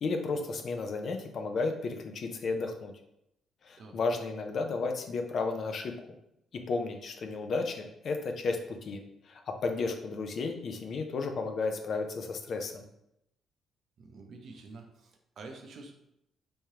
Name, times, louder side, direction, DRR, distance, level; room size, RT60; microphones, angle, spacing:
voice 1, 0.0-2.9 3.6-5.9 6.7-12.8, left 3 dB, 55° left, 5 dB, 0.5 m, -33 dB
voice 2, 14.0-15.9, right 3 dB, 60° right, 3 dB, 0.6 m, -48 dB
3.5 x 3.1 x 2.8 m, 0.81 s
cardioid pair, 90°, 0 cm